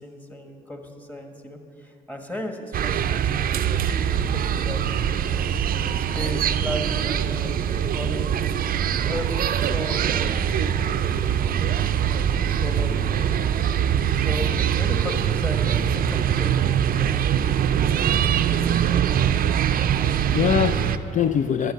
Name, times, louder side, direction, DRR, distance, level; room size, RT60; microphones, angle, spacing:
voice 1, 0.0-3.6 4.0-8.4 8.9-9.3 9.6-13.4 14.2-16.7, left 1 dB, 10° left, 1.5 m, -36 dB
sound 1, 2.7-21.0, right 9 dB, 55° right, 0.5 m, -23 dB
sound 2, 3.6-18.7, left 5 dB, 80° left, 0.7 m, -42 dB
voice 2, 19.7-21.7, left 8 dB, 45° left, 0.4 m, -24 dB
11.5 x 7.8 x 6.6 m
supercardioid pair, 65°, 18 cm